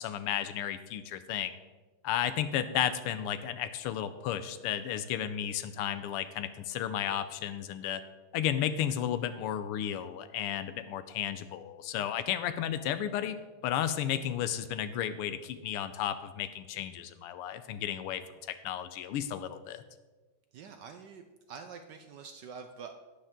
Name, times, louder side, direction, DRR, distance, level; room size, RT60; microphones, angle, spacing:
voice 1, 0.0-1.5 2.0-8.0 8.3-13.4 13.6-18.2 18.6-19.8, left 10 dB, 85° left, 12 dB, 1.6 m, -33 dB
voice 2, 20.5-22.9, right 6 dB, 70° right, 6 dB, 1.0 m, -46 dB
11.5 x 9.9 x 3.7 m, 1.3 s
omnidirectional pair, 2.4 m